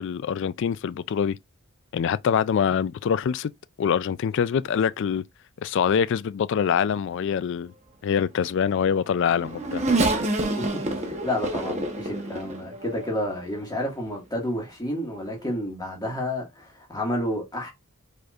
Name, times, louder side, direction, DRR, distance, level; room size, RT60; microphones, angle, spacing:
voice 1, 0.0-1.4 1.9-3.5 3.8-5.2 5.6-7.7 8.0-9.8, left 7 dB, 55° left, 0.3 m, -24 dB
Race car auto racing / Accelerating revving vroom, 8.8-13.4 14.1-14.2 15.3-15.5, right 2 dB, 30° right, 1.0 m, -28 dB
voice 2, 11.0-17.7, left 1 dB, 15° left, 1.8 m, -30 dB
5.0 x 4.2 x 2.4 m
head